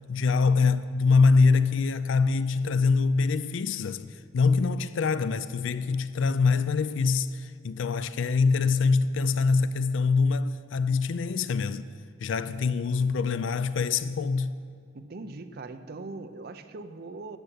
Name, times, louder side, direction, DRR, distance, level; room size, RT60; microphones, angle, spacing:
voice 1, 0.1-11.9 12.2-14.5, left 4 dB, 75° left, 0.4 m, -24 dB
voice 2, 14.9-17.4, right 3 dB, 50° right, 0.6 m, -41 dB
12.0 x 7.9 x 7.9 m
head